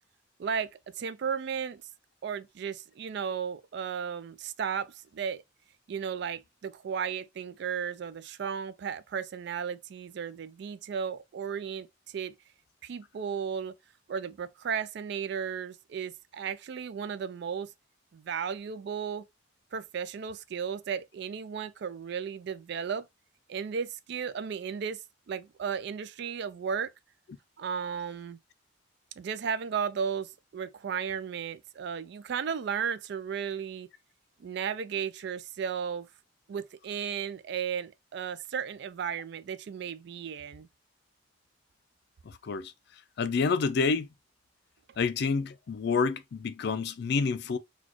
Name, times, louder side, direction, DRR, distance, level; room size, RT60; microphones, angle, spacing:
voice 1, 0.4-0.7 1.0-1.8 2.2-5.4 5.9-12.3 12.8-13.7 14.1-17.7 18.1-19.2 19.7-23.1 23.5-25.0 25.3-26.9 27.6-28.4 29.2-33.9 34.4-36.1 36.5-40.7, right 7 dB, 60° right, 0.3 m, -34 dB
voice 2, 43.2-44.1 45.0-47.6, left 4 dB, 60° left, 0.4 m, -28 dB
4.1 x 2.3 x 2.9 m
head